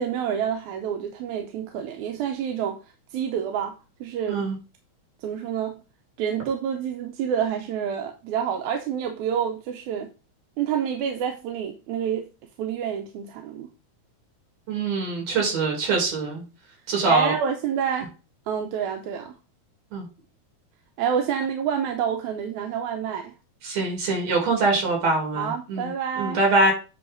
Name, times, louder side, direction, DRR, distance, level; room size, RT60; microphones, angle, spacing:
voice 1, 0.0-2.8 3.1-3.7 4.0-4.5 5.2-5.8 6.2-10.1 10.6-12.3 12.6-13.7 17.1-18.1 18.5-19.4 21.0-23.3 25.4-26.4, right 8 dB, 80° right, 4 dB, 2.0 m, -28 dB
voice 2, 14.7-16.4 16.9-17.3 19.9-20.1 23.6-25.9 26.2-26.7, right 3 dB, 60° right, 1 dB, 3.7 m, -23 dB
9.1 x 3.1 x 5.0 m, 0.32 s
omnidirectional pair, 3.4 m